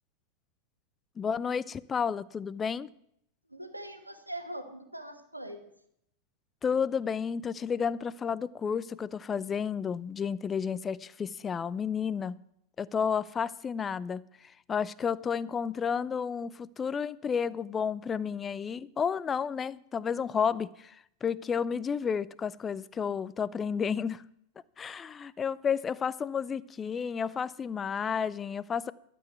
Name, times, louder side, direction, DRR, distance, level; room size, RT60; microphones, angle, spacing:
voice 1, 1.2-2.9 6.6-12.4 12.8-24.2 24.8-28.9, left 6 dB, 20° left, 19 dB, 0.4 m, -31 dB
voice 2, 3.5-5.7, right 1 dB, 85° right, 6 dB, 1.2 m, -42 dB
12.5 x 6.2 x 9.3 m, 0.73 s
figure-of-eight pair, 90°, 0 cm